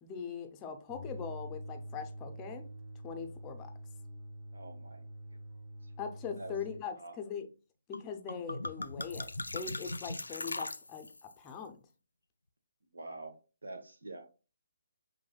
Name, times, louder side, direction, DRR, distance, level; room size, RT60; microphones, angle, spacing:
voice 1, 0.0-2.7 3.0-3.7 6.0-7.5 7.9-11.8, left 6 dB, 20° left, 0.5 m, -41 dB
sound 1, 0.9-6.9, equal, 25° right, 0.9 m, -46 dB
voice 2, 4.5-5.0 6.4-6.5 7.0-7.1 12.9-14.2, right 2 dB, 70° right, 1.0 m, -46 dB
sound 2, 7.9-8.0 8.3-11.3, left 2 dB, 75° left, 0.3 m, -39 dB
5.7 x 2.6 x 2.3 m
figure-of-eight pair, 140°, 0 cm